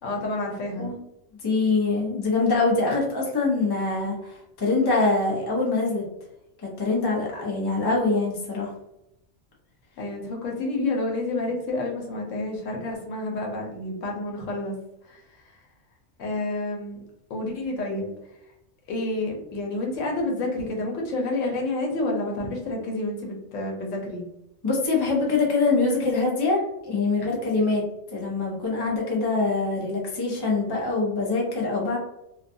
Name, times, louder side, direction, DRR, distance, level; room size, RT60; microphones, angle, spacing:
voice 1, 0.0-0.9 10.0-14.8 15.0-15.2 15.5-15.6 16.2-17.0 17.3-18.1 18.9-24.2, left 2 dB, 90° left, 0 dB, 1.1 m, -29 dB
voice 2, 1.4-6.0 6.6-8.7 24.6-27.8 28.1-32.0, left 3 dB, 25° left, -2 dB, 0.5 m, -24 dB
2.5 x 2.2 x 2.6 m, 0.83 s
omnidirectional pair, 1.3 m